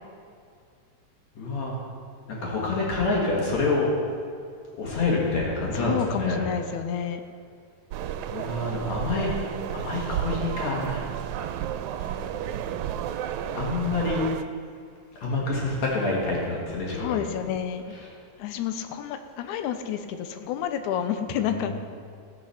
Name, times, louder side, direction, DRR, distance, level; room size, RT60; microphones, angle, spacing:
voice 1, 1.4-1.8 2.3-3.9 4.8-6.4 8.3-9.3 9.7-11.1 13.5-14.2 15.2-17.2 21.4-21.7, left 3 dB, 65° left, -4 dB, 3.1 m, -27 dB
voice 2, 5.7-7.2 17.0-18.0 18.4-21.7, left 9 dB, 85° left, 8 dB, 2.1 m, -30 dB
sound 1, 7.9-14.4, right 10 dB, 85° right, 1.9 m, -32 dB
16.5 x 6.1 x 5.7 m, 2.3 s
omnidirectional pair, 3.4 m